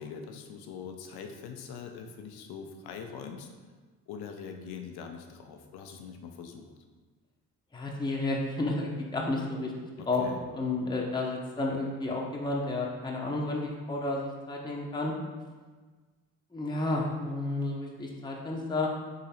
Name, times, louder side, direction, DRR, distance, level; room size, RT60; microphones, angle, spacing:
voice 1, 0.0-3.5 4.1-6.7 10.0-10.5, left 6 dB, 70° left, 4 dB, 0.7 m, -43 dB
voice 2, 7.7-9.7 10.1-10.3 10.5-15.1 16.5-18.9, left 2 dB, 10° left, -2 dB, 0.8 m, -31 dB
3.8 x 3.0 x 4.3 m, 1.4 s
supercardioid pair, 55°, 39 cm